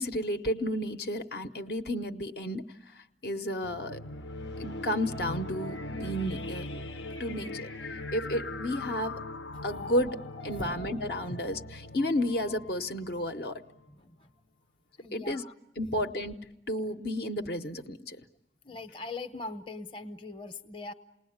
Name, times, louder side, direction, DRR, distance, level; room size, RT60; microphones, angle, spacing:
voice 1, 0.0-4.0 4.6-6.7 7.2-7.7 8.1-9.2 9.6-10.2 10.4-13.6 15.1-15.4 15.8-16.3 16.7-18.2, equal, 60° left, 6 dB, 0.9 m, -32 dB
sound 1, 3.6-13.8, left 2 dB, 90° left, 1.0 m, -40 dB
voice 2, 13.9-14.3 15.0-15.5 18.6-20.9, left 3 dB, 30° left, 7 dB, 0.9 m, -41 dB
28.5 x 19.5 x 8.6 m, 0.91 s
head